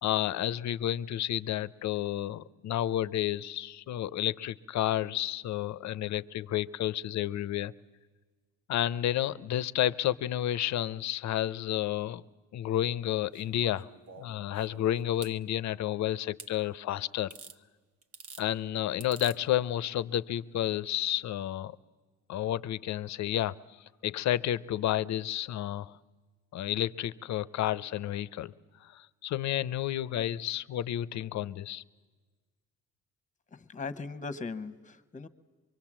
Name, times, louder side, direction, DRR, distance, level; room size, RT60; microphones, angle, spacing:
voice 1, 0.0-7.7 8.7-12.2 12.5-13.9 14.2-17.3 18.4-21.8 22.3-23.6 24.0-26.0 26.5-28.5 28.8-31.8, left 12 dB, 65° left, 0.6 m, -31 dB
sound 1, 13.3-15.4 16.4-16.5 17.3-17.6 18.0-18.5 19.0-19.4 20.6-20.7, right 5 dB, 50° right, 1.0 m, -49 dB
voice 2, 33.5-35.3, left 4 dB, 25° left, 1.1 m, -39 dB
24.0 x 23.0 x 7.4 m
cardioid pair, 90°, 30 cm